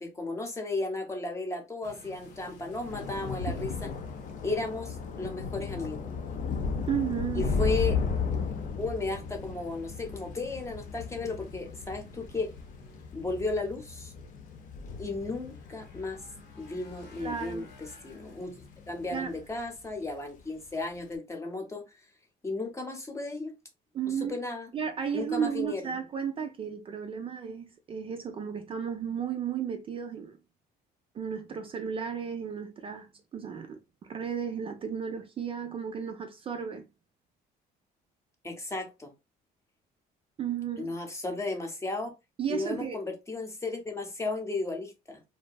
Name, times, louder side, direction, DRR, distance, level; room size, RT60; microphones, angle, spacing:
voice 1, 0.0-3.9 4.4-6.1 7.3-8.0 8.8-12.5 13.1-14.1 15.0-16.2 16.6-18.5 18.9-21.8 22.4-23.5 24.1-24.7 25.1-26.0 38.4-39.1 40.8-42.1 42.5-45.2, left 3 dB, 15° left, 0.7 m, -34 dB
sound 1, 1.8-19.4, left 4 dB, 75° left, 1.0 m, -53 dB
Thunder / Rain, 2.3-18.9 19.2-19.7 19.9-20.1, left 5 dB, 50° left, 0.5 m, -35 dB
voice 2, 6.9-7.5 17.2-17.7 19.1-19.3 23.9-24.4 24.7-30.4 31.1-33.8 34.1-36.8 40.4-40.9 42.4-43.0, right 7 dB, 35° right, 0.4 m, -34 dB
2.7 x 2.2 x 2.2 m
cardioid pair, 110°, 17 cm